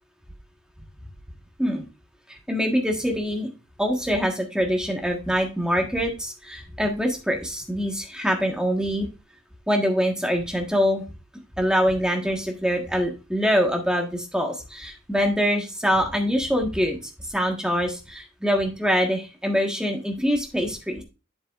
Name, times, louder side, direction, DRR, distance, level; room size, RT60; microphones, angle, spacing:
voice 1, 2.3-3.5 3.8-9.1 9.7-11.0 11.6-17.0 17.3-21.0, equal, 5° right, 2 dB, 1.4 m, -24 dB
8.0 x 7.7 x 2.5 m, 0.29 s
head